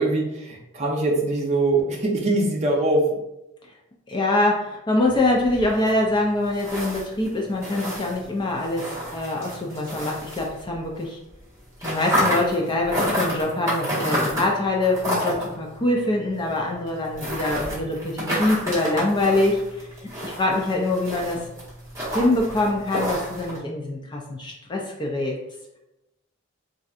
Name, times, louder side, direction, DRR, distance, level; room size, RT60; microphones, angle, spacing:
voice 1, 0.0-3.2, right 2 dB, 30° right, -1 dB, 0.7 m, -22 dB
voice 2, 4.1-11.2 11.8-19.6 20.2-21.5 22.1-25.4, left 2 dB, 20° left, 0 dB, 0.4 m, -24 dB
sound 1, 5.0-11.0 11.3-23.6, equal, 15° right, 1.3 m, -30 dB
4.3 x 2.6 x 2.4 m, 0.91 s
head